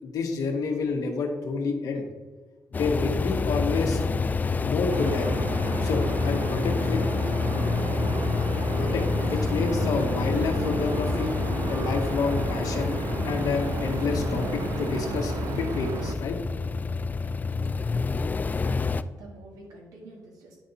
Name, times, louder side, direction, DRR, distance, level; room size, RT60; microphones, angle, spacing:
voice 1, 0.0-2.1 2.8-4.0 4.6-5.3 5.6-7.0 8.8-11.3 11.7-13.0 13.2-16.4, left 4 dB, 75° left, 3 dB, 1.2 m, -29 dB
sound 1, 2.7-19.0, left 4 dB, 30° left, 0.3 m, -28 dB
sound 2, 4.9-16.1, right 7 dB, 70° right, 0.4 m, -34 dB
voice 2, 18.5-20.6, right 2 dB, 85° right, 0 dB, 1.8 m, -48 dB
9.6 x 4.3 x 4.0 m, 1.3 s
cardioid pair, 80°, 6 cm